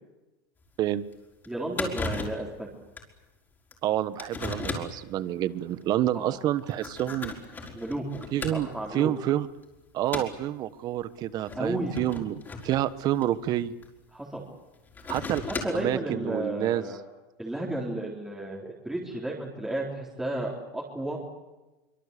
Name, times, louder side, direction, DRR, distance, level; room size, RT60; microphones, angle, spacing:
sound 1, 0.6-0.7 1.1-1.2 1.4-1.5 1.8-2.5 3.0-3.1 3.7-3.8 4.2-5.0 5.8-6.0 6.6-8.9 9.3-9.6 10.1-10.4 11.4-13.9 14.7-15.9, left 3 dB, 15° left, 5.1 m, -36 dB
voice 1, 1.5-2.7 6.1-6.4 7.7-8.0 8.5-9.1 11.6-11.9 14.1-14.4 15.4-17.0 17.4-21.2, right 1 dB, 5° right, -4 dB, 4.1 m, -33 dB
voice 2, 3.8-7.3 8.3-9.5 9.9-13.7 15.1-15.4 15.7-16.8, right 13 dB, 35° right, 15 dB, 1.2 m, -28 dB
25.0 x 24.0 x 8.5 m, 1.1 s
supercardioid pair, 145°, 11 cm